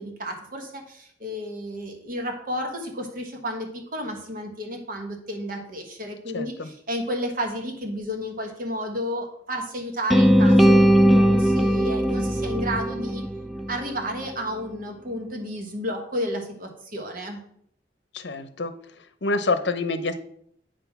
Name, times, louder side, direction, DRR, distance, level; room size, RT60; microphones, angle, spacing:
voice 1, 0.0-13.2 13.7-17.4, equal, 50° right, 3 dB, 1.4 m, -32 dB
voice 2, 6.3-6.7 18.1-18.7 19.0-20.2, left 3 dB, 75° left, 11 dB, 0.7 m, -27 dB
sound 1, 10.1-14.2, equal, ahead, 0.5 m, -19 dB
8.7 x 3.8 x 5.9 m, 0.66 s
head